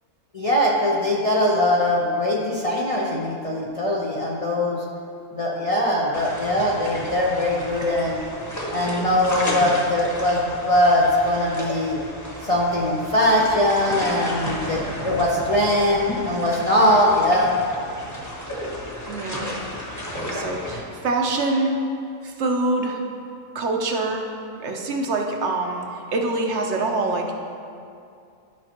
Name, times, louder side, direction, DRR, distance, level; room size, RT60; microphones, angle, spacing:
voice 1, 0.3-4.8 5.4-8.2 8.7-12.0 12.4-17.5, left 1 dB, 40° left, -4 dB, 0.6 m, -21 dB
sound 1, 6.1-20.8, equal, 15° left, 1.1 m, -33 dB
voice 2, 19.0-19.6 20.3-21.8 22.2-23.0 23.5-24.3 24.6-27.3, right 2 dB, 65° right, 2 dB, 1.0 m, -25 dB
12.5 x 5.4 x 2.9 m, 2.5 s
omnidirectional pair, 1.4 m